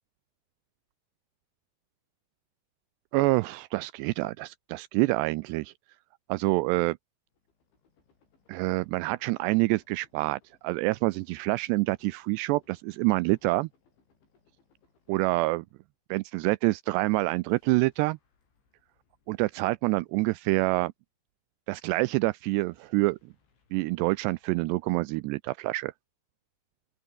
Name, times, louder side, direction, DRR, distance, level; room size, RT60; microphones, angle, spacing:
voice 1, 3.1-5.7 6.3-7.0 8.5-13.7 15.1-15.7 16.1-18.2 19.3-20.9 21.7-23.2 23.7-25.9, right 21 dB, 85° right, 2.5 m, -27 dB
sound 1, 7.3-16.1 17.5-20.8 22.7-24.9, left 5 dB, 80° left, 9.3 m, -70 dB
open air
omnidirectional pair, 5.3 m